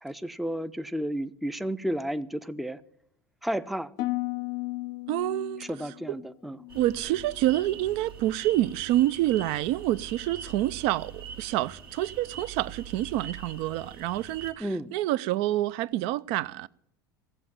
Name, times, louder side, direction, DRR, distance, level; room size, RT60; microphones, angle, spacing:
voice 1, 0.0-2.8 3.4-3.9 5.6-6.6 14.6-14.9, right 1 dB, ahead, 0.5 m, -32 dB
Harp, 4.0-8.1 8.4-8.9 9.4-9.8, left 18 dB, 60° left, 0.6 m, -37 dB
voice 2, 5.1-5.6 6.7-11.1 11.4-16.7, right 15 dB, 60° right, 0.5 m, -27 dB
sound 1, 6.7-14.5, right 6 dB, 90° right, 1.8 m, -44 dB
15.5 x 7.8 x 8.6 m
hypercardioid pair, 80°, 12 cm